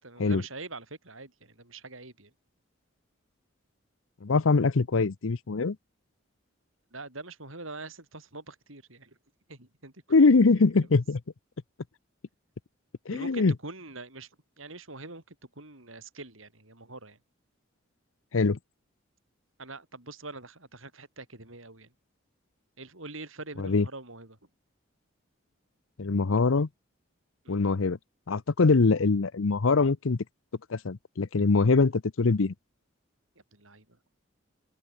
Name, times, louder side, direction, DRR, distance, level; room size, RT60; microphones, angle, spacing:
voice 1, 0.0-2.3 5.0-5.1 6.9-9.2 9.5-10.3 13.1-14.3 14.6-17.2 19.6-21.9 22.8-24.4 27.4-27.6 33.5-34.0, right 3 dB, 75° right, 7.4 m, -44 dB
voice 2, 4.2-5.8 10.1-11.2 13.1-13.5 18.3-18.6 23.6-23.9 26.0-26.7 27.5-28.0 28.3-30.2 30.7-32.5, left 4 dB, 75° left, 0.7 m, -23 dB
head